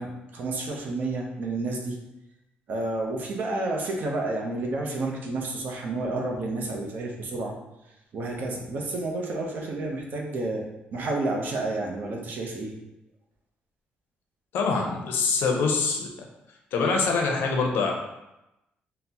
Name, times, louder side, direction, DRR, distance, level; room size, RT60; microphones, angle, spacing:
voice 1, 0.0-2.0 2.7-7.5 8.1-10.6 10.9-12.7, right 2 dB, 60° right, 0 dB, 0.6 m, -30 dB
voice 2, 14.5-16.3 16.7-17.9, left 4 dB, 85° left, 2 dB, 0.5 m, -24 dB
3.8 x 2.0 x 2.8 m, 0.94 s
cardioid pair, 125°, 4 cm